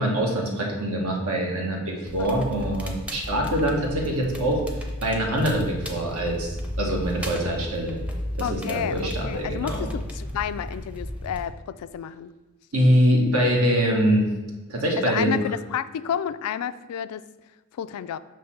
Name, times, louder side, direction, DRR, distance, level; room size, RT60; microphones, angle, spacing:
voice 1, 0.0-4.6 5.0-8.0 8.3-9.9 12.7-14.3 14.7-15.4, equal, 75° right, 0 dB, 1.2 m, -24 dB
Crackle, 2.1-11.5, left 1 dB, 5° right, 0.6 m, -34 dB
voice 2, 8.4-12.3 15.0-17.3 17.7-18.2, left 9 dB, 85° left, 16 dB, 0.3 m, -31 dB
6.6 x 3.1 x 5.8 m, 1.1 s
head